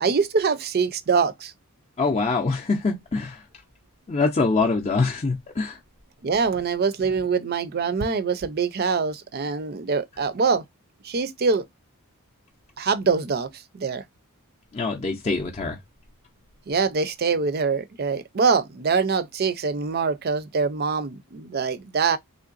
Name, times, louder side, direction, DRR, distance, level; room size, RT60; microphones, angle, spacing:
voice 1, 0.0-1.5 6.2-10.6 11.0-11.6 12.8-13.5 13.7-14.0 16.7-22.2, right 5 dB, 45° right, 0.5 m, -24 dB
voice 2, 2.0-3.4 4.1-5.8 14.7-15.8, left 3 dB, 30° left, 0.5 m, -24 dB
3.7 x 3.2 x 2.4 m
head